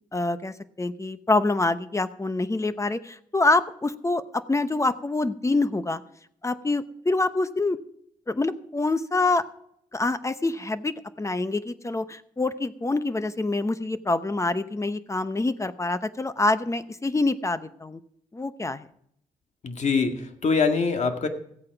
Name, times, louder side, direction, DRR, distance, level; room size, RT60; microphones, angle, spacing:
voice 1, 0.1-6.0 6.4-7.8 8.3-9.4 9.9-18.0 18.3-18.9, left 2 dB, 20° left, 13 dB, 0.9 m, -26 dB
voice 2, 19.6-21.3, left 5 dB, 55° left, 6 dB, 2.0 m, -24 dB
15.0 x 8.6 x 5.9 m, 0.70 s
cardioid pair, 75°, 14 cm